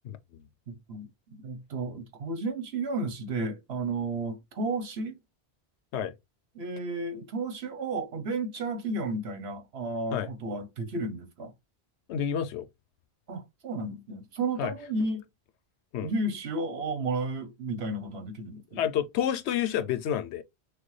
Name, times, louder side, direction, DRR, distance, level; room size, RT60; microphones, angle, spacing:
voice 1, 0.7-1.1 1.4-5.2 6.5-11.5 13.3-15.2 16.0-18.8, right 2 dB, 75° right, 1.2 m, -33 dB
voice 2, 12.1-12.7 14.6-14.7 15.9-16.1 18.8-20.4, left 9 dB, 85° left, 0.9 m, -29 dB
6.2 x 2.2 x 3.2 m
omnidirectional pair, 1.1 m